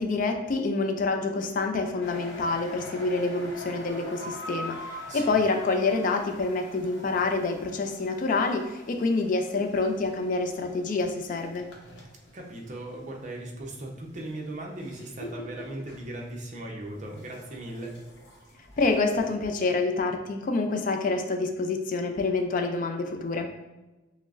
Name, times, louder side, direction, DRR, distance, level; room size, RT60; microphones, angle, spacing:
voice 1, 0.0-4.8 5.1-11.6 18.8-23.5, left 3 dB, 45° left, 5 dB, 0.3 m, -27 dB
sound 1, 2.0-13.0 13.5-19.3, left 1 dB, 75° left, 0.8 m, -44 dB
voice 2, 12.3-18.0, right 1 dB, 40° right, 0 dB, 0.7 m, -38 dB
6.0 x 2.0 x 2.4 m, 1.1 s
head